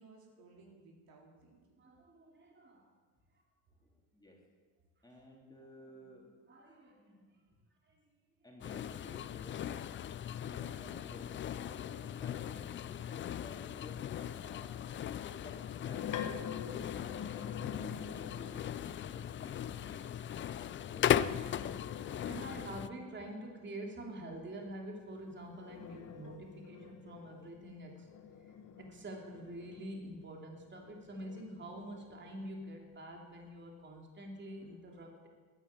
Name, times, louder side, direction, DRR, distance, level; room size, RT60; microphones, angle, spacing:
voice 1, 0.0-2.1 2.8-2.9, right 3 dB, 60° right, 0 dB, 4.4 m, -60 dB
voice 2, 1.8-2.9 3.3-3.4 5.6-5.7 6.5-7.4 7.8-8.0 22.2-28.1 28.4-35.3, right 1 dB, 25° right, 0 dB, 3.0 m, -47 dB
voice 3, 3.8-4.4 5.0-6.3 8.4-9.8 10.4-14.7 15.3-16.4 16.7-21.2, left 1 dB, 10° left, -2 dB, 3.6 m, -54 dB
sound 1, 8.6-22.9, left 10 dB, 30° left, 0.4 m, -38 dB
sound 2, 15.5-18.8 20.8-23.1 25.1-30.3 30.8-32.6, left 8 dB, 50° left, 1.4 m, -47 dB
13.0 x 10.0 x 8.8 m, 1.5 s
cardioid pair, 105°, 40 cm